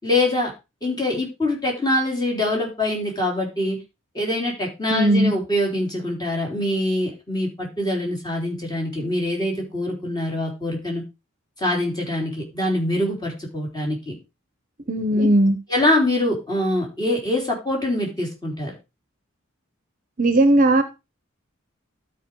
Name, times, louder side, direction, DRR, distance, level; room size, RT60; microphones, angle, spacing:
voice 1, 0.0-0.5 0.8-3.8 4.1-11.0 11.6-14.2 15.2-15.3 15.7-18.7, left 1 dB, 20° left, -1 dB, 3.6 m, -24 dB
voice 2, 4.9-5.3 14.9-15.6 20.2-20.8, right 1 dB, 40° right, 10 dB, 0.9 m, -17 dB
12.5 x 4.5 x 4.7 m, 0.27 s
head